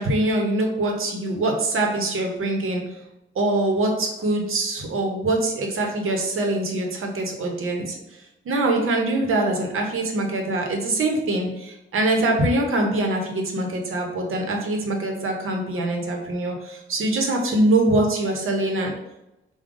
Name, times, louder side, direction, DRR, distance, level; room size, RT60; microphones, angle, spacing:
voice 1, 0.0-2.8 3.3-8.0 8.4-18.9, right 2 dB, 85° right, 2 dB, 0.9 m, -23 dB
4.8 x 2.3 x 3.7 m, 0.92 s
wide cardioid pair, 125°, 21 cm